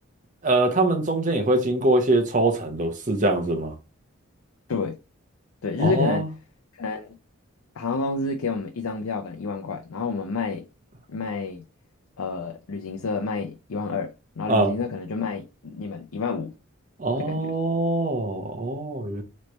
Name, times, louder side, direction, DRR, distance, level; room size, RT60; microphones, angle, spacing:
voice 1, 0.4-3.7 5.8-6.3 14.5-14.7 17.0-19.2, right 2 dB, 35° right, 0.9 m, -23 dB
voice 2, 5.6-6.3 6.7-7.2 7.8-10.7 11.1-11.6 12.2-14.1 14.4-16.5 17.2-17.5, left 4 dB, 85° left, 0.5 m, -29 dB
4.0 x 3.2 x 3.1 m
head